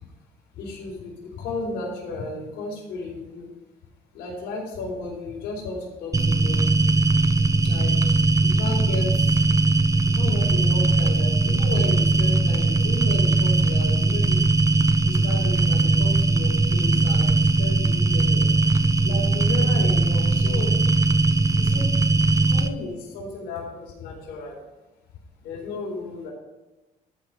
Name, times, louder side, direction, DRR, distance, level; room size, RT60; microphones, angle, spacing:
voice 1, 0.6-3.5 4.1-6.7 7.6-9.4 9.8-9.9 10.1-14.4 15.1-18.5 19.0-20.7 21.6-21.9 22.2-24.6 25.4-26.3, left 3 dB, 80° left, -2 dB, 4.3 m, -34 dB
sound 1, 6.1-22.7, right 2 dB, 20° right, 0.8 m, -20 dB
14.0 x 5.4 x 5.9 m, 1.0 s
cardioid pair, 110°, 17 cm